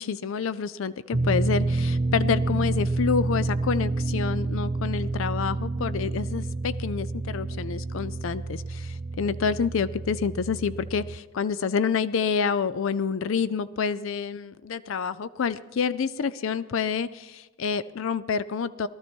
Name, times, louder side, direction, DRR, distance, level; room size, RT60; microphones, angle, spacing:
voice 1, 0.0-18.9, left 6 dB, 65° left, 16 dB, 0.4 m, -28 dB
sound 1, 1.1-11.2, right 2 dB, 35° right, 0.5 m, -28 dB
19.0 x 12.5 x 4.4 m, 1.2 s
head